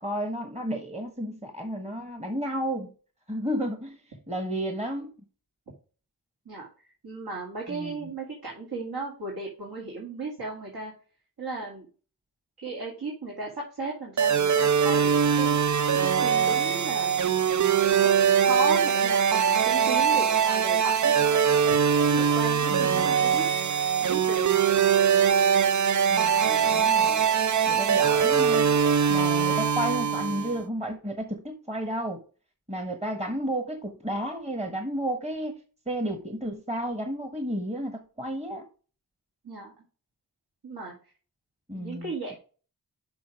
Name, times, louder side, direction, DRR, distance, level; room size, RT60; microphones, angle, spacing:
voice 1, 0.0-2.9 3.3-4.0 4.3-5.1 7.7-8.1 26.1-27.3 27.7-28.7 29.1-32.2 32.7-35.6 35.9-38.7 41.7-42.4, equal, 15° right, 1.2 m, -32 dB
voice 2, 7.0-10.9 11.4-11.9 12.6-15.6 15.9-17.1 18.0-18.2 18.4-21.1 21.7-21.8 22.0-23.4 24.0-24.5 29.3-29.4 39.4-39.7 40.6-41.0 41.7-42.4, right 3 dB, 65° right, 2.4 m, -35 dB
sound 1, 14.2-30.6, right 7 dB, 45° right, 0.5 m, -22 dB
6.2 x 5.6 x 4.9 m
wide cardioid pair, 55°, 40 cm